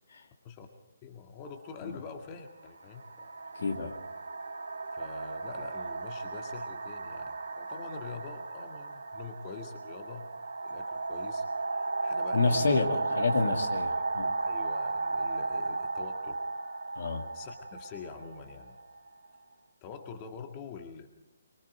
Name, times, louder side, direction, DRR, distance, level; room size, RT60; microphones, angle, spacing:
voice 1, 1.0-3.6 4.9-10.3 10.6-11.4 12.0-13.4 13.9-16.4 17.3-18.8 19.8-21.1, left 5 dB, 25° left, 5 dB, 1.9 m, -45 dB
sound 1, 1.5-1.7 2.6-19.3, right 3 dB, 70° right, 3.1 m, -35 dB
voice 2, 3.5-4.0 12.3-14.3 17.0-17.3, left 4 dB, 55° left, 5 dB, 2.4 m, -29 dB
24.5 x 23.0 x 5.0 m, 0.94 s
figure-of-eight pair, 140°, 0 cm